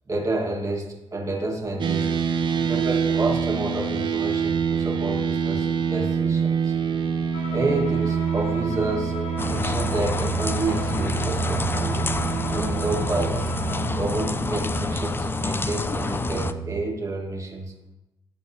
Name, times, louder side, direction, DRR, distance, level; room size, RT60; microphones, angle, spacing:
voice 1, 0.1-2.1 2.6-6.7 7.5-9.1 9.5-12.1 12.5-13.5 14.0-17.9, right 2 dB, 35° right, -1 dB, 1.4 m, -29 dB
sound 1, 1.8-16.8, right 6 dB, 55° right, 0.6 m, -27 dB
Bowed string instrument, 7.3-14.0, left 3 dB, 70° left, 2.2 m, -38 dB
sound 2, 9.4-16.5, left 3 dB, 25° left, 0.4 m, -28 dB
11.0 x 4.4 x 2.7 m, 0.98 s
supercardioid pair, 55°, 9 cm